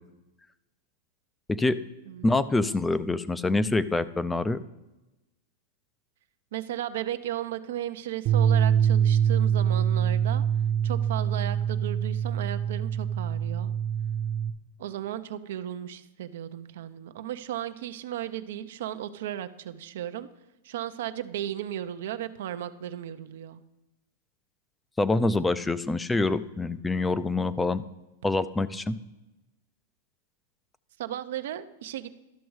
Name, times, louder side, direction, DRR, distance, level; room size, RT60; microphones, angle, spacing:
voice 1, 2.2-4.6 25.0-27.8 28.2-29.0, left 2 dB, 10° left, 15 dB, 0.4 m, -25 dB
voice 2, 6.5-10.4 10.8-13.7 14.8-20.3 20.6-23.6 31.0-32.2, right 12 dB, 70° right, 10 dB, 0.6 m, -35 dB
sound 1, 8.3-14.5, right 8 dB, 40° right, 0.8 m, -24 dB
12.5 x 6.2 x 4.7 m, 1.0 s
supercardioid pair, 145°, 0 cm